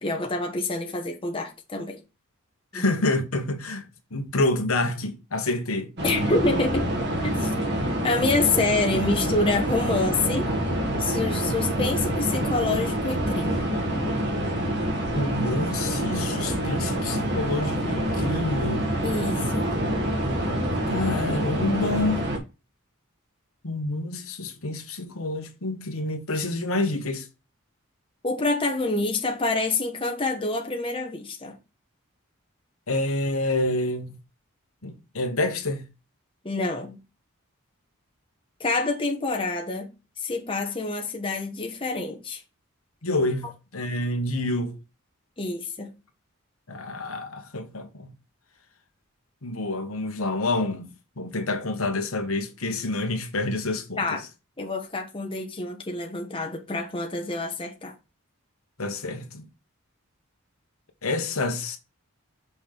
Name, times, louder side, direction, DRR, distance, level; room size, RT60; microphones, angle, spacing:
voice 1, 0.0-2.0 2.7-2.8 6.0-6.9 7.2-7.5 8.0-10.5 11.0-13.6 19.0-19.8 28.2-31.6 36.4-37.0 38.6-39.9 40.2-42.4 45.4-45.9 54.0-54.2 54.6-57.9, left 3 dB, 25° left, 1.2 m, -27 dB
voice 2, 2.7-3.8 4.1-5.9 15.1-18.9 20.9-22.2 23.6-27.3 32.9-34.2 34.8-35.9 43.0-44.8 46.7-48.1 49.4-54.2 58.8-59.5 61.0-61.8, left 2 dB, 85° left, 1.4 m, -28 dB
sound 1, 6.0-22.4, right 1 dB, 55° right, 2.0 m, -26 dB
6.1 x 5.6 x 3.5 m
head